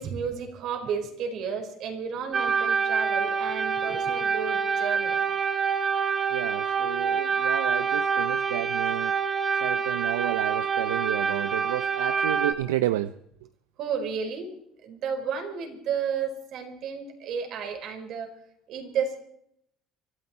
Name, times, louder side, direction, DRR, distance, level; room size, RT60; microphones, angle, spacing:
voice 1, 0.0-5.2 13.8-14.6 14.8-18.3 18.7-19.2, right 6 dB, 60° right, 4 dB, 4.8 m, -32 dB
sound 1, 2.3-12.5, right 6 dB, 40° right, 2.8 m, -26 dB
voice 2, 6.3-9.1 9.6-13.1, right 14 dB, 90° right, 13 dB, 0.6 m, -31 dB
24.5 x 13.5 x 4.5 m, 0.72 s
hypercardioid pair, 70°, 0 cm